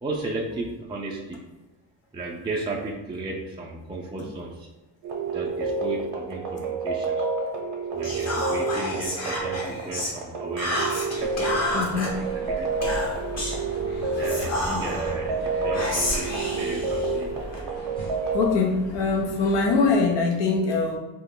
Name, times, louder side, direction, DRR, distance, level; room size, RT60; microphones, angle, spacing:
voice 1, 0.0-1.4 2.1-4.7 5.3-7.2 7.9-12.7 14.1-17.3, right 2 dB, 10° right, -2 dB, 0.3 m, -34 dB
sound 1, 5.0-18.5, right 3 dB, 65° right, 0.6 m, -29 dB
Whispering, 8.0-10.2 10.6-12.1 12.8-13.6 14.2-15.1 15.7-17.6, left 1 dB, 35° left, 0.9 m, -30 dB
sound 2, 11.2-19.9, left 1 dB, 55° left, 1.2 m, -39 dB
voice 2, 11.7-12.2 14.1-14.4 14.7-14.9 18.3-21.0, left 4 dB, 75° left, 0 dB, 0.7 m, -23 dB
2.3 x 2.0 x 3.5 m, 1.0 s
cardioid pair, 75°, 44 cm